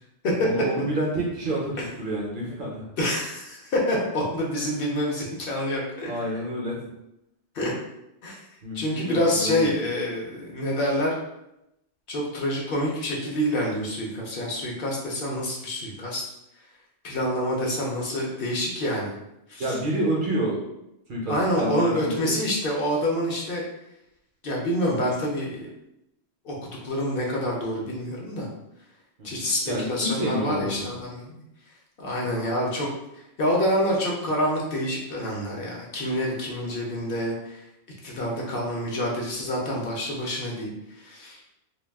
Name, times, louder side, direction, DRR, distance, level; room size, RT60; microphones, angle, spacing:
voice 1, 0.4-2.9 6.1-6.9 8.6-9.7 19.6-20.6 21.1-22.4 29.2-31.0, right 1 dB, 55° right, -3 dB, 0.6 m, -29 dB
voice 2, 3.0-6.1 7.5-7.7 8.2-8.4 8.7-11.2 12.1-16.2 17.0-19.2 19.5-19.8 21.3-23.6 24.4-25.7 26.4-28.5 29.2-31.4 32.0-32.9 33.4-37.6 38.0-41.4, equal, 60° left, -2 dB, 0.7 m, -27 dB
2.3 x 2.3 x 3.3 m, 0.85 s
omnidirectional pair, 1.2 m